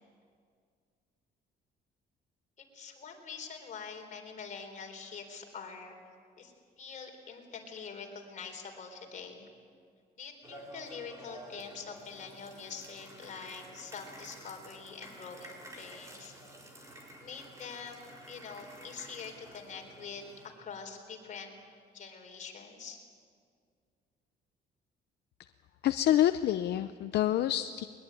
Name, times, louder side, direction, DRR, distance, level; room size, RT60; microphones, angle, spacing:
voice 1, 2.6-6.0 6.4-9.5 10.2-16.4 17.2-21.5 21.9-23.0, left 5 dB, 45° left, 3 dB, 4.1 m, -45 dB
sound 1, 10.4-20.5, right 1 dB, 15° right, 4.5 m, -51 dB
voice 2, 25.8-27.8, left 12 dB, 70° left, 10 dB, 0.7 m, -27 dB
21.5 x 21.5 x 9.1 m, 2.1 s
cardioid pair, 140°, 18 cm